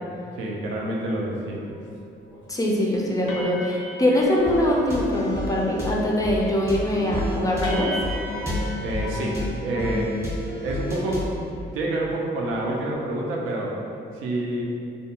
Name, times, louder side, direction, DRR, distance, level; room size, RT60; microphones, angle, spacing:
voice 1, 0.4-1.7 8.8-10.3 10.6-11.3 11.7-13.8 14.1-14.6, right 1 dB, 85° right, -2 dB, 0.5 m, -28 dB
sound 1, 1.8-1.9 2.2-2.5 2.8-2.9 3.3-5.1 5.4-5.9 6.1-6.6 7.0-7.1 7.6-10.2, left 1 dB, 70° left, 0.5 m, -35 dB
voice 2, 2.5-7.9, left 1 dB, 15° left, -2 dB, 0.4 m, -22 dB
sound 2, 4.5-11.4, left 1 dB, 15° right, 0.7 m, -31 dB
2.4 x 2.2 x 2.8 m, 2.5 s
cardioid pair, 90°, 20 cm